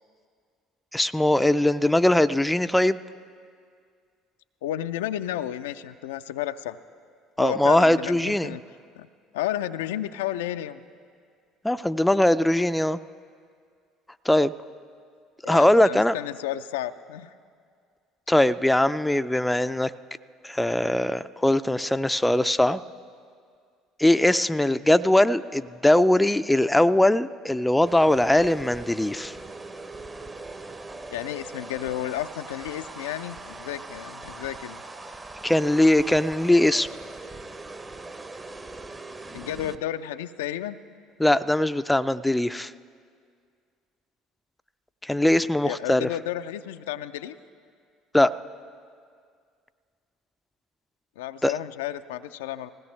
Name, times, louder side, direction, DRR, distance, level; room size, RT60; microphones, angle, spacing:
voice 1, 0.9-3.0 7.4-8.5 11.6-13.0 14.3-14.5 15.4-16.1 18.3-19.9 20.4-22.8 24.0-29.4 35.4-36.9 41.2-42.7 45.0-46.1 48.1-48.3 51.4-51.5, left 1 dB, 5° left, 13 dB, 0.4 m, -21 dB
voice 2, 4.6-6.8 7.4-8.6 9.0-9.1 9.3-10.8 15.4-17.3 31.1-34.8 39.3-40.8 45.6-47.4 51.2-52.7, left 12 dB, 80° left, 11 dB, 0.3 m, -32 dB
sound 1, 27.8-39.8, right 2 dB, 20° right, 0.8 m, -41 dB
19.5 x 16.5 x 3.2 m, 2.1 s
hypercardioid pair, 60°, 0 cm